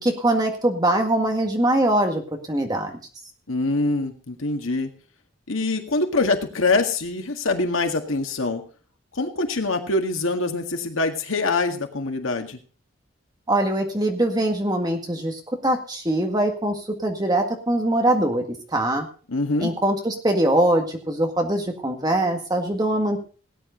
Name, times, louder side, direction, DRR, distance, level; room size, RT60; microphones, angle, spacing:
voice 1, 0.0-2.2 2.5-3.0 13.5-18.4 18.7-19.1 19.6-23.2, right 1 dB, 20° right, 3 dB, 1.8 m, -22 dB
voice 2, 3.5-4.9 5.5-8.6 9.2-12.6 19.3-19.7, left 3 dB, 85° left, 5 dB, 1.9 m, -24 dB
17.5 x 9.7 x 3.9 m, 0.38 s
head